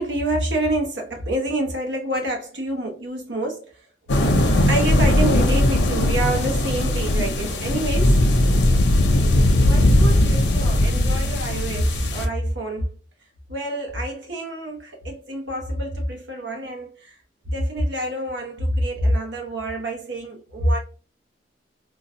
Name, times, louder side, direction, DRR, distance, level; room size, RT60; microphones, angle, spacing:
voice 1, 0.0-3.8 4.7-8.3 9.7-13.0 13.5-17.2 17.4-20.8, right 1 dB, 85° right, 1.1 m, -27 dB
sound 1, 4.1-12.3, left 1 dB, 75° left, 0.7 m, -19 dB
3.8 x 2.3 x 2.7 m
head